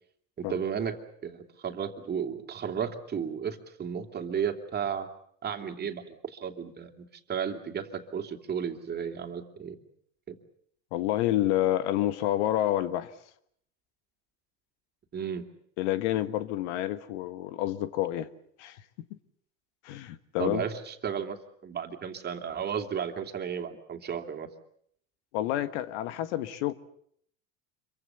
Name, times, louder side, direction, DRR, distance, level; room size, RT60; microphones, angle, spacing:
voice 1, 0.4-1.0 1.2-5.1 5.4-9.8 10.3-10.4 15.1-15.4 20.4-21.4 21.6-24.5, right 7 dB, 30° right, 2.9 m, -33 dB
voice 2, 10.9-13.1 15.8-18.3 18.6-18.8 19.8-20.6 25.3-26.7, left 13 dB, 80° left, 1.6 m, -28 dB
26.5 x 23.5 x 7.0 m
supercardioid pair, 120°, 34 cm